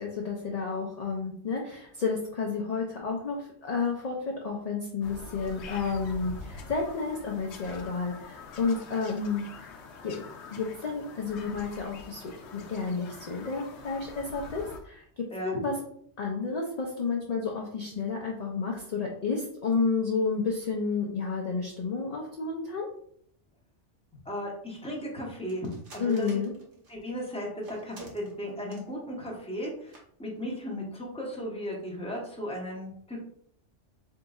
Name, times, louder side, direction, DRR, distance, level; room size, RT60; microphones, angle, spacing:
voice 1, 0.0-9.5 10.0-15.8 16.2-22.9 26.0-26.5, left 4 dB, 50° left, -1 dB, 0.5 m, -31 dB
Bird vocalization bird call bird song, 5.0-14.8, left 4 dB, 70° left, 0.9 m, -45 dB
voice 2, 24.2-25.7 25.9-26.4 26.9-33.2, equal, 5° left, -2 dB, 0.8 m, -36 dB
sound 1, 25.5-27.0 27.6-28.9 29.2-29.3 29.7-29.8 29.9-30.0 30.4-30.6, right 1 dB, 50° right, 1.1 m, -48 dB
3.9 x 3.7 x 2.3 m, 0.67 s
omnidirectional pair, 1.2 m